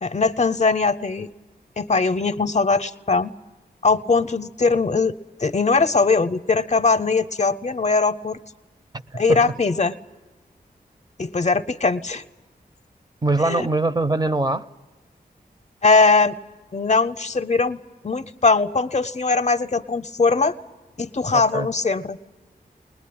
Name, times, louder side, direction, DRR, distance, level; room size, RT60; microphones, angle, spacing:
voice 1, 0.0-1.3 1.8-3.3 3.8-5.1 5.4-8.4 9.1-9.9 11.2-12.2 13.4-13.6 15.8-16.3 16.7-20.5 21.0-22.3, left 4 dB, 45° left, 0.7 m, -20 dB
voice 2, 9.1-9.5 13.2-14.7 21.3-21.7, right 2 dB, 25° right, 0.7 m, -22 dB
21.5 x 20.0 x 8.7 m
wide cardioid pair, 85°, 16 cm